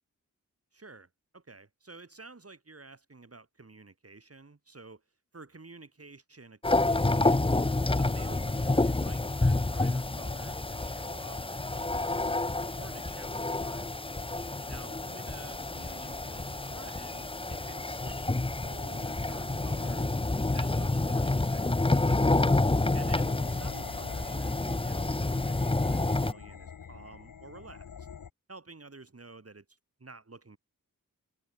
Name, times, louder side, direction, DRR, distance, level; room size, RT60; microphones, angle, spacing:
voice 1, 0.7-5.0 5.3-7.5 8.0-12.3 12.8-14.3 14.7-20.2 20.5-22.5 22.9-28.1 28.5-30.6, right 3 dB, 45° right, 3.5 m, -51 dB
sound 1, 6.6-26.3, left 2 dB, 15° left, 0.8 m, -29 dB
sound 2, 22.8-28.3, left 7 dB, 65° left, 1.0 m, -46 dB
cardioid pair, 45°, 35 cm